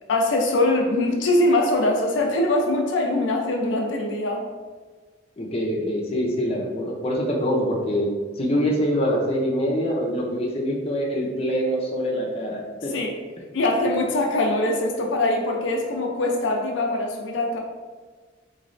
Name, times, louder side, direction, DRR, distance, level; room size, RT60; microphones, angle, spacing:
voice 1, 0.1-4.4 12.9-13.1 13.5-17.6, left 2 dB, 80° left, 1 dB, 0.5 m, -22 dB
voice 2, 5.4-8.1 8.4-12.9, equal, 35° left, -2 dB, 0.6 m, -24 dB
3.9 x 3.1 x 2.5 m, 1.4 s
head